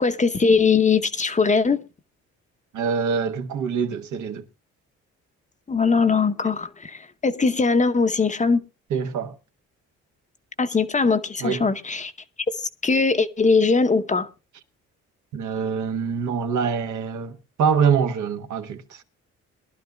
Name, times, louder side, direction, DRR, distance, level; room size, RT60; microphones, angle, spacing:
voice 1, 0.0-1.8 5.7-8.6 10.6-12.1 12.6-14.3, left 4 dB, 25° left, 0.8 m, -21 dB
voice 2, 2.7-4.4 8.9-9.3 11.4-11.7 15.3-19.0, right 6 dB, 75° right, 1.2 m, -25 dB
22.5 x 11.5 x 2.3 m
cardioid pair, 90°, 30 cm